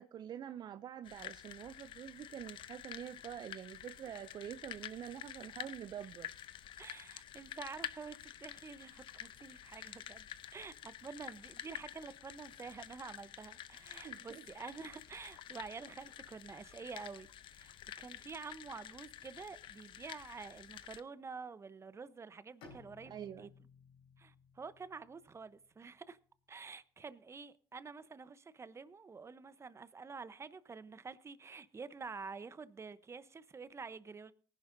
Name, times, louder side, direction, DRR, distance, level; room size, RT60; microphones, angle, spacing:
voice 1, 0.0-6.3 14.0-14.5 23.1-23.5, right 10 dB, 50° right, 0.4 m, -46 dB
sound 1, 1.0-21.0, left 11 dB, 65° left, 0.7 m, -50 dB
voice 2, 6.8-10.3 10.5-23.5 24.2-26.2 26.5-34.3, right 5 dB, 30° right, 0.8 m, -48 dB
Bowed string instrument, 22.6-26.2, left 4 dB, 85° left, 4.0 m, -60 dB
19.0 x 10.5 x 2.6 m
supercardioid pair, 75°, 9 cm